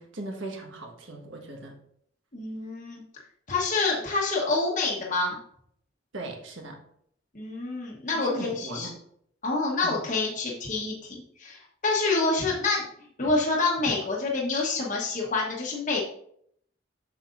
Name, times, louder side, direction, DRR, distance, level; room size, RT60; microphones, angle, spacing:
voice 1, 0.0-1.8 6.1-6.8 8.1-9.0 9.8-10.0, right 2 dB, 80° right, 2 dB, 1.4 m, -38 dB
voice 2, 2.3-3.0 3.5-5.4 7.3-8.9 9.4-12.8 13.2-16.0, left 3 dB, 40° left, -3 dB, 1.0 m, -27 dB
7.6 x 6.2 x 2.5 m, 0.67 s
head